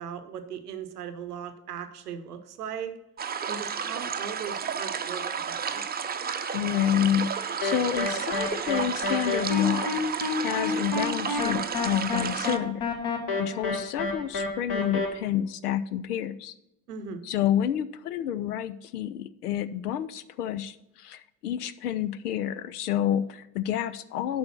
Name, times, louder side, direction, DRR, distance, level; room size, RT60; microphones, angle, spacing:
voice 1, 0.0-2.9 3.5-5.8 16.9-17.2, right 7 dB, 85° right, 9 dB, 0.9 m, -38 dB
sound 1, 3.2-12.6, right 7 dB, 20° right, 0.6 m, -32 dB
voice 2, 6.5-12.9 13.4-16.5 17.2-24.4, left 10 dB, 80° left, 14 dB, 0.5 m, -29 dB
sound 2, 7.6-15.1, left 3 dB, 50° left, 1.8 m, -29 dB
8.6 x 5.5 x 5.8 m, 0.90 s
figure-of-eight pair, 55°, 45 cm